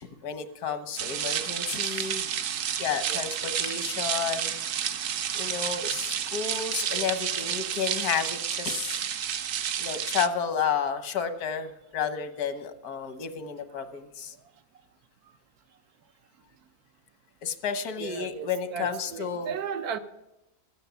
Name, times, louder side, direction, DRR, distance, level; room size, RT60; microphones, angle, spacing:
voice 1, 0.0-2.2 2.8-4.6 5.3-9.0 9.8-14.3 17.4-19.5, left 7 dB, 85° left, 1.5 m, -31 dB
sound 1, 1.0-10.3, right 9 dB, 65° right, 1.1 m, -30 dB
voice 2, 18.0-20.0, right 7 dB, 85° right, 1.3 m, -35 dB
13.5 x 9.0 x 6.9 m
omnidirectional pair, 1.6 m